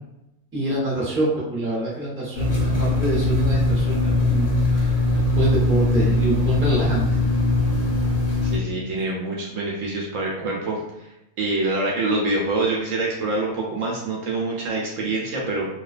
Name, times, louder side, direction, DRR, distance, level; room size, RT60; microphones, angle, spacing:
voice 1, 0.5-7.2, right 2 dB, 10° right, -7 dB, 0.6 m, -26 dB
sound 1, 2.3-8.6, left 2 dB, 50° left, 0.8 m, -21 dB
voice 2, 8.4-11.1 11.4-15.7, right 2 dB, 70° right, -3 dB, 0.9 m, -25 dB
2.3 x 2.3 x 2.3 m, 0.86 s
omnidirectional pair, 1.5 m